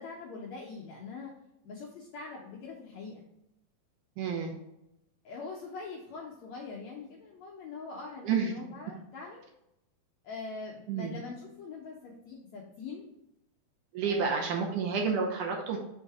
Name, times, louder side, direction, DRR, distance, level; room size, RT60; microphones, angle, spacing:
voice 1, 0.0-1.3 1.6-3.2 5.2-9.4 10.2-13.0 14.0-14.5, left 4 dB, 75° left, -3 dB, 1.6 m, -43 dB
voice 2, 4.2-4.5 8.2-8.5 10.9-11.2 13.9-15.8, right 5 dB, 70° right, 1 dB, 2.2 m, -30 dB
5.5 x 3.7 x 4.7 m, 0.85 s
omnidirectional pair, 4.1 m